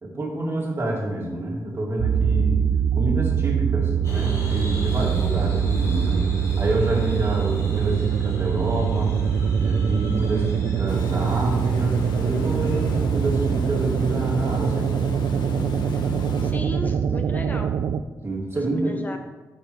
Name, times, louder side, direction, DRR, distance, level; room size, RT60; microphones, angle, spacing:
voice 1, 0.0-2.6 2.9-6.2 6.6-9.1 9.6-14.9 18.2-18.9, right 1 dB, 40° right, -2 dB, 2.2 m, -27 dB
sound 1, 2.0-18.0, right 7 dB, 75° right, 0.4 m, -23 dB
sound 2, 4.0-13.0, left 1 dB, 45° left, 3.0 m, -39 dB
Water, 10.9-16.5, left 2 dB, 90° left, 1.0 m, -34 dB
voice 2, 16.4-17.7 18.7-19.2, left 2 dB, 25° left, 5 dB, 0.6 m, -35 dB
12.5 x 6.0 x 3.2 m, 1.2 s
wide cardioid pair, 140°, 7 cm